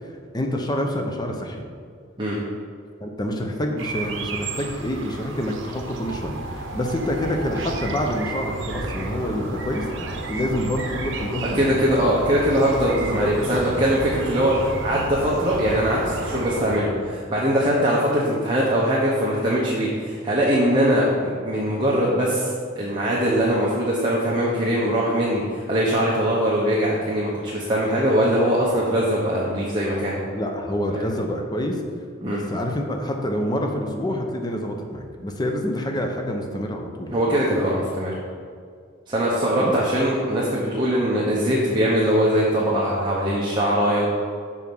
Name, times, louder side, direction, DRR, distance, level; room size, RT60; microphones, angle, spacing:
voice 1, 0.1-1.6 3.0-9.9 10.3-11.6 13.0-13.3 30.3-31.8 32.2-37.2 39.6-39.7, left 1 dB, 20° left, 2 dB, 0.6 m, -27 dB
sound 1, 3.8-16.8, right 2 dB, 75° right, 0.9 m, -31 dB
voice 2, 11.5-22.5 22.8-30.1 30.9-31.0 32.2-32.4 37.1-38.1 39.1-44.1, equal, 25° right, -6 dB, 0.9 m, -21 dB
6.8 x 4.8 x 5.3 m, 2.1 s
head